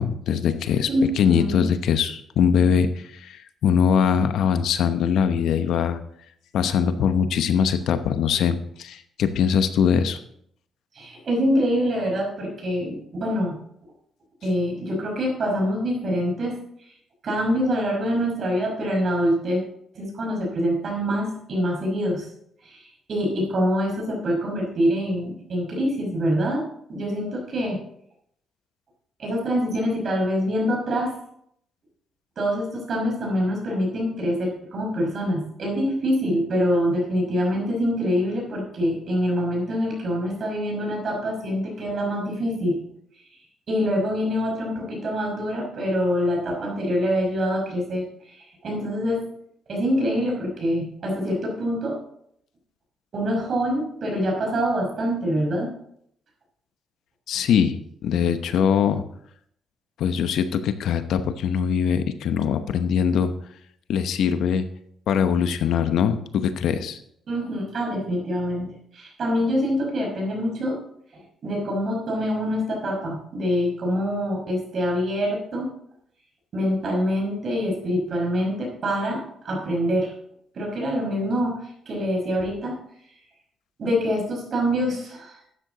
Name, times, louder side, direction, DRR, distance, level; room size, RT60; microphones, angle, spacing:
voice 1, 0.0-0.9 1.2-6.0 6.5-10.2 57.3-59.0 60.0-63.3 63.9-64.7 65.1-67.0, left 7 dB, 75° left, 10 dB, 0.9 m, -22 dB
voice 2, 0.9-1.7 11.0-13.6 14.4-16.6 17.2-19.6 19.9-22.3 22.6-27.8 29.2-31.1 32.4-42.8 43.7-48.0 48.3-49.3 49.7-52.0 53.1-55.7 67.3-70.8 71.1-75.7 76.5-80.1 80.5-82.8 83.8-85.4, equal, 55° right, 0 dB, 5.6 m, -25 dB
12.5 x 9.3 x 4.0 m, 0.69 s
cardioid pair, 90°, 0 cm